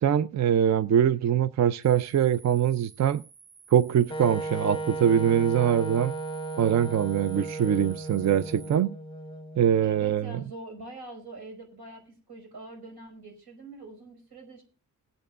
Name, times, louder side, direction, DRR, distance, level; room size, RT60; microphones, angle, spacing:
voice 1, 0.0-3.2 3.7-6.1 6.6-8.9 9.6-10.2, right 9 dB, 45° right, 0.5 m, -23 dB
sound 1, 1.8-8.8, right 5 dB, 20° right, 4.8 m, -53 dB
Wind instrument woodwind instrument, 4.1-9.9, right 3 dB, 15° left, 0.7 m, -35 dB
voice 2, 9.8-14.6, right 2 dB, 80° right, 5.3 m, -44 dB
20.0 x 8.8 x 2.4 m
wide cardioid pair, 105°, 38 cm